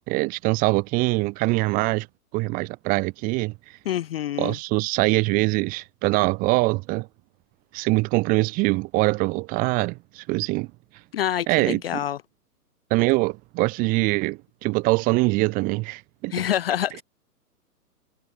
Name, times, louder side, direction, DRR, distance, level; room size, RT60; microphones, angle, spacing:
voice 1, 0.1-2.1 2.3-3.5 4.4-7.1 7.7-10.7 11.5-12.0 12.9-16.3, right 24 dB, 20° right, 0.7 m, -23 dB
voice 2, 3.9-4.6 11.1-12.2 16.3-17.0, left 11 dB, 40° left, 0.5 m, -26 dB
hypercardioid pair, 130°, 47 cm